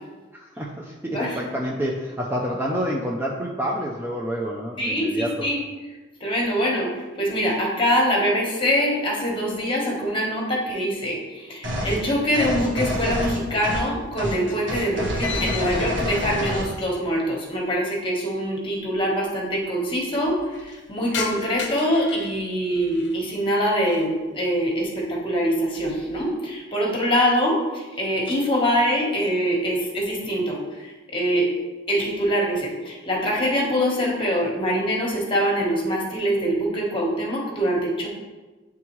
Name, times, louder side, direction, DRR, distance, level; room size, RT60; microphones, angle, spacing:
voice 1, 0.3-5.5, equal, 10° right, -2 dB, 0.4 m, -28 dB
voice 2, 1.0-1.4 4.8-5.6 6.2-31.5 31.9-38.1, equal, 25° left, -2 dB, 1.2 m, -24 dB
sound 1, 11.6-12.0 12.3-13.9 14.2-14.4 14.7-16.7, equal, 65° right, 1.3 m, -27 dB
sound 2, 12.0-12.9 13.1-17.2 17.5-17.6 18.5-18.6 18.7-18.8 19.1-19.6 20.0-23.2 23.7-24.2 24.6-25.0 25.4-26.3, left 6 dB, 60° left, 0.6 m, -38 dB
8.9 x 3.5 x 3.1 m, 1.2 s
head